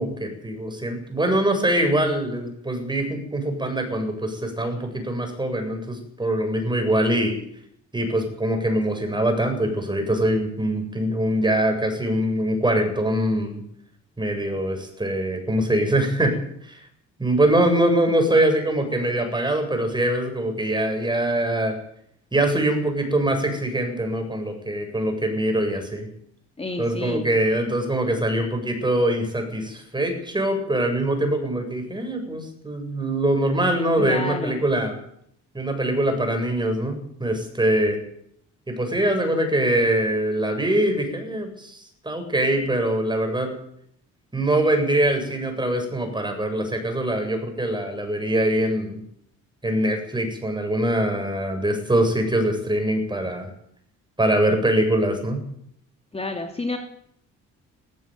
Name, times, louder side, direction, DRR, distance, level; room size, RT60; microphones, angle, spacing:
voice 1, 0.0-7.4 7.9-13.6 14.2-16.8 17.2-21.8 22.3-26.1 26.8-35.0 35.5-38.0 38.7-43.5 44.3-49.0 49.6-53.5 54.2-55.4, right 1 dB, 15° right, 5 dB, 8.0 m, -23 dB
voice 2, 26.6-27.4 34.0-34.6 56.1-56.8, left 2 dB, 20° left, 5 dB, 2.9 m, -30 dB
19.0 x 15.5 x 9.6 m, 0.70 s
cardioid pair, 90°, 30 cm